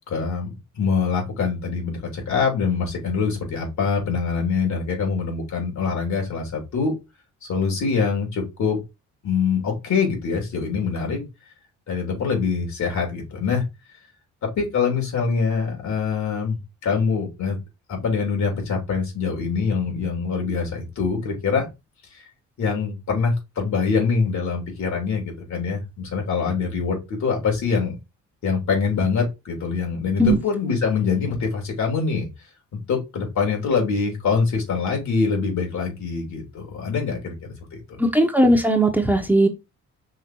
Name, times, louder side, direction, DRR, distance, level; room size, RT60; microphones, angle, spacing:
voice 1, 0.1-0.5 0.7-6.9 7.5-8.8 9.2-11.2 11.9-13.6 14.6-17.6 17.9-21.7 22.6-28.0 28.4-32.3 32.9-38.0, left 5 dB, 70° left, 0 dB, 3.6 m, -24 dB
voice 2, 38.0-39.5, right 1 dB, 5° right, 4 dB, 1.1 m, -18 dB
5.6 x 3.7 x 4.5 m, 0.24 s
cardioid pair, 90°, 30 cm